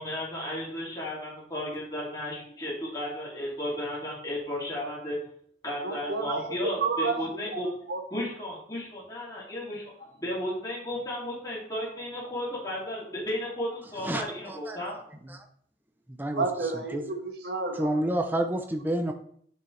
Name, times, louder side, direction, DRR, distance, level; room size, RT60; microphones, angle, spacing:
voice 1, 0.0-5.2 5.6-7.7 8.1-15.0, left 1 dB, 20° left, -6 dB, 2.6 m, -34 dB
voice 2, 5.8-7.2 7.5-7.6 7.9-8.0 16.3-17.9, right 4 dB, 60° right, 2 dB, 1.5 m, -30 dB
voice 3, 14.0-14.8 15.2-15.4 16.1-16.4 16.9-17.0 17.7-19.1, right 1 dB, 10° right, 5 dB, 0.6 m, -29 dB
9.7 x 6.2 x 3.3 m, 0.62 s
head